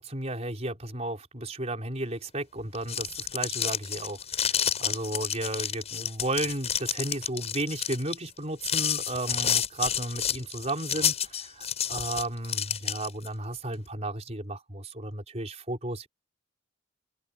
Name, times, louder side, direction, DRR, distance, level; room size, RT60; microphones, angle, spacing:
voice 1, 0.0-16.1, right 2 dB, 35° right, 5.0 m, -34 dB
sound 1, 2.7-13.3, left 8 dB, 30° left, 8.0 m, -30 dB
open air
head